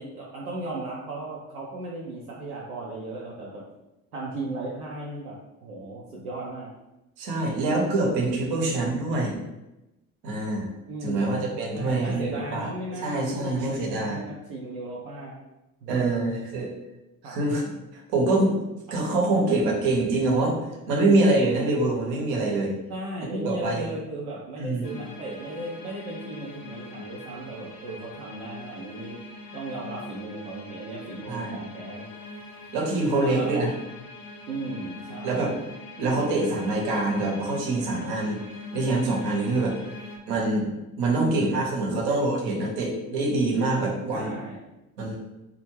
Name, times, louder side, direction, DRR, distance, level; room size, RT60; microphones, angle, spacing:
voice 1, 0.0-3.7 4.1-6.7 10.9-11.4 11.7-15.4 15.8-16.2 17.2-17.4 22.9-29.2 29.5-32.1 33.1-33.8 34.5-35.5 39.8-39.9 41.1-41.5 41.9-42.1 44.1-44.6, right 2 dB, 80° right, -5 dB, 0.5 m, -36 dB
voice 2, 7.2-9.4 10.2-10.7 11.0-12.7 13.0-14.2 15.9-16.7 17.2-17.6 17.9-18.6 18.9-20.6 20.9-22.7 23.3-23.9 24.6-24.9 31.3-31.5 32.7-33.7 35.2-35.5 36.0-38.4 38.7-39.8 40.3-40.7 41.0-44.3 45.0-45.1, right 2 dB, 60° right, -1 dB, 0.8 m, -25 dB
sound 1, 24.8-40.2, left 2 dB, 50° left, 0.5 m, -42 dB
2.3 x 2.0 x 3.1 m, 0.98 s
figure-of-eight pair, 50°, 44 cm